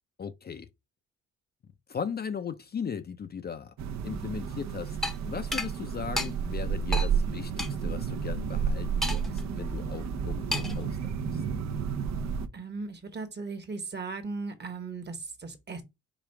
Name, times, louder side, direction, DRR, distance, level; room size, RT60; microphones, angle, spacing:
voice 1, 0.2-0.7 1.9-3.7 4.0-5.0 5.2-11.4, left 7 dB, 35° left, 0.5 m, -37 dB
sound 1, 3.8-12.5, right 6 dB, 65° right, 0.7 m, -31 dB
sound 2, 5.0-5.2 5.5-5.7 6.2-6.3 6.9-7.1 7.6-7.7 9.0-9.4 10.5-10.8, left 1 dB, ahead, 0.7 m, -31 dB
voice 2, 12.5-15.8, right 4 dB, 35° right, 1.2 m, -37 dB
4.9 x 2.4 x 4.5 m
cardioid pair, 90°, 30 cm